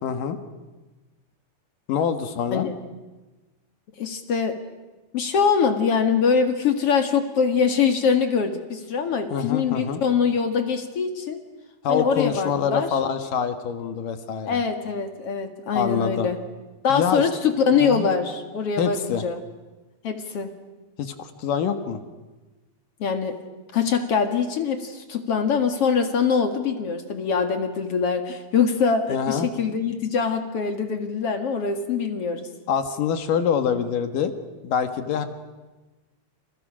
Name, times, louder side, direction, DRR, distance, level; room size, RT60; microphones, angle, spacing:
voice 1, 0.0-0.4 1.9-2.7 9.3-10.0 11.8-14.6 15.7-16.3 16.9-17.3 17.7-18.1 18.8-19.3 21.0-22.0 29.1-29.5 32.7-34.3 34.6-35.3, left 7 dB, 65° left, 8 dB, 2.8 m, -25 dB
voice 2, 4.0-4.6 5.1-11.4 11.9-12.9 14.5-16.4 16.8-19.4 20.0-20.5 23.0-23.4 23.7-32.5, left 6 dB, 45° left, 7 dB, 2.3 m, -23 dB
30.0 x 29.5 x 6.2 m, 1.2 s
omnidirectional pair, 4.6 m